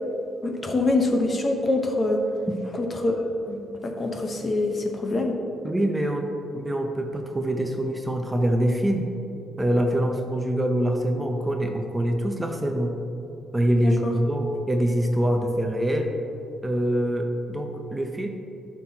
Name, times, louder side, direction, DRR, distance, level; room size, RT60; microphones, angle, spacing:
voice 1, 0.4-2.2 2.8-5.3 13.8-14.1, left 2 dB, 35° left, 2 dB, 1.0 m, -25 dB
voice 2, 5.6-9.1 9.6-13.0 13.5-16.1 16.6-18.3, right 1 dB, 15° right, 3 dB, 0.7 m, -24 dB
11.0 x 6.1 x 2.9 m, 2.8 s
cardioid pair, 90°, 0 cm